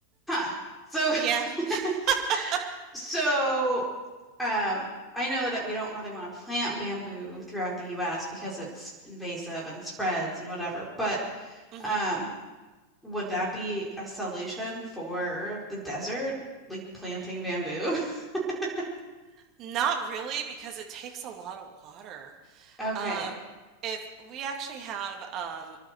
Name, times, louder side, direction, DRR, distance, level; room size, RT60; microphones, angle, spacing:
voice 1, 0.3-0.6 0.9-1.3 2.3-2.5 2.9-3.9 4.4-4.8 5.1-12.3 13.0-16.4 16.7-18.6 22.8-23.3, right 1 dB, 5° left, -5 dB, 4.5 m, -31 dB
voice 2, 1.2-1.8 2.1-2.2 2.5-2.6 11.7-12.0 19.6-23.3 23.8-25.8, right 8 dB, 35° right, 2 dB, 2.3 m, -33 dB
26.0 x 11.5 x 4.6 m, 1.2 s
figure-of-eight pair, 90°, 0 cm